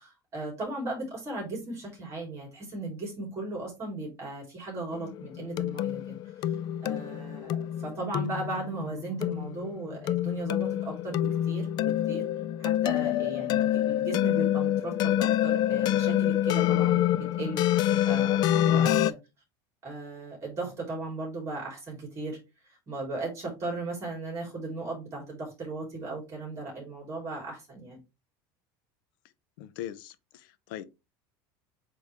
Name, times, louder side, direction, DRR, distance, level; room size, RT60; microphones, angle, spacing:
voice 1, 0.0-6.2 6.4-6.5 6.8-11.2 11.5-12.2 12.6-19.1 19.8-22.4 22.7-28.0, right 2 dB, 25° right, 3.5 m, -37 dB
sound 1, 4.9-19.1, left 12 dB, 40° left, 0.3 m, -27 dB
voice 2, 29.6-30.9, left 12 dB, 80° left, 0.8 m, -40 dB
8.2 x 3.4 x 3.5 m
cardioid pair, 155°, 11 cm